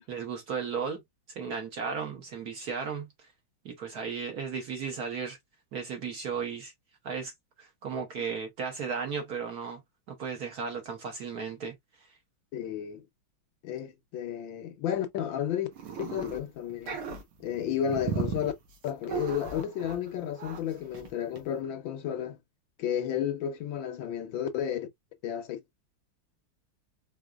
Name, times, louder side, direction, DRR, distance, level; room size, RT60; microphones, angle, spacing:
voice 1, 0.1-1.0 1.3-3.3 3.6-5.4 5.7-6.7 7.0-7.3 7.6-9.8 10.1-11.7, right 6 dB, 55° right, 1.2 m, -35 dB
voice 2, 12.5-13.0 13.6-15.7 16.0-17.0 17.4-18.5 18.8-22.4 22.8-24.9 25.2-25.6, left 9 dB, 70° left, 1.3 m, -32 dB
sound 1, 15.7-16.4 16.7-20.1 20.4-20.6 20.9-21.1 21.4-21.5, right 7 dB, 80° right, 2.1 m, -36 dB
5.0 x 2.8 x 2.3 m
omnidirectional pair, 2.4 m